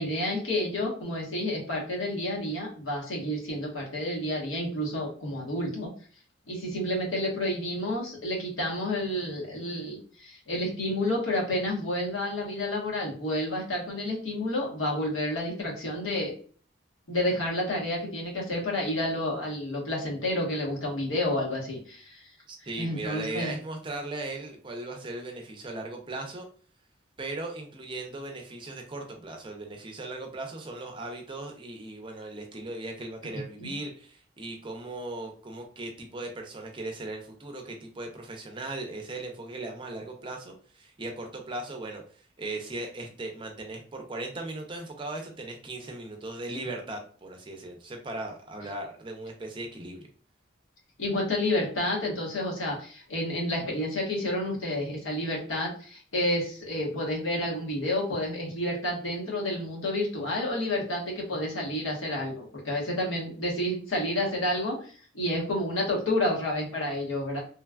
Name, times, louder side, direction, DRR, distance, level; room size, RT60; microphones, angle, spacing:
voice 1, 0.0-5.9 6.5-16.3 17.1-22.2 22.8-23.5 33.6-33.7 51.0-67.4, left 1 dB, 90° left, -2 dB, 1.1 m, -30 dB
voice 2, 22.5-26.5 27.2-50.1, right 2 dB, 25° right, 3 dB, 0.4 m, -38 dB
3.1 x 2.2 x 2.3 m, 0.43 s
head